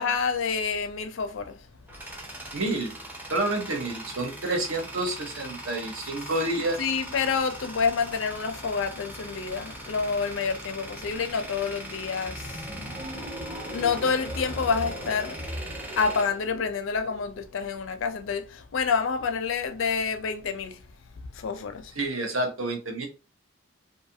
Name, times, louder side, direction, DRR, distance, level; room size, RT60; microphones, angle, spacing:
voice 1, 0.0-1.7 6.8-12.7 13.7-15.4 16.0-20.8 21.3-21.9, left 5 dB, 65° left, 0.4 m, -28 dB
Tools, 1.6-17.2, right 1 dB, 10° right, 0.4 m, -41 dB
voice 2, 2.5-2.9 3.3-6.9 22.0-23.1, right 2 dB, 70° right, 0.8 m, -29 dB
sound 1, 12.2-17.4, equal, 30° right, 1.1 m, -38 dB
2.6 x 2.3 x 2.6 m
head